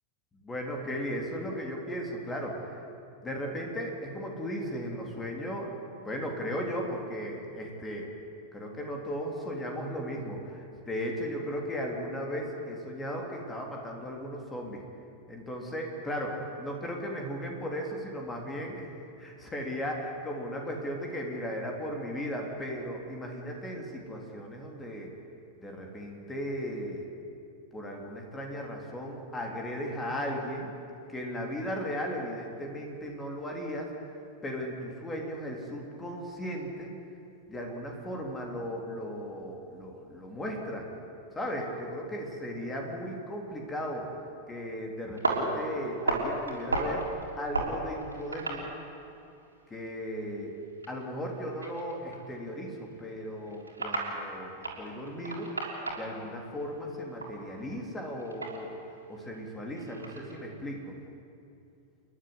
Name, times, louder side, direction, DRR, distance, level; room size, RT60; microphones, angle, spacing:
voice 1, 0.3-2.8 3.2-5.7 6.1-8.1 8.5-14.8 15.3-18.9 19.2-25.1 25.6-27.1 27.7-30.7 31.1-33.9 34.4-36.9 37.5-40.8 41.3-44.1 44.5-47.1 47.4-48.7 49.7-50.5 50.9-55.5 56.0-58.8 59.1-60.8, equal, 15° left, 1 dB, 3.6 m, -36 dB
sound 1, 45.1-49.2 49.5-56.3 56.6-60.5, right 2 dB, 80° right, 3.8 m, -35 dB
29.0 x 11.0 x 9.7 m, 2.6 s
figure-of-eight pair, 90°, 0 cm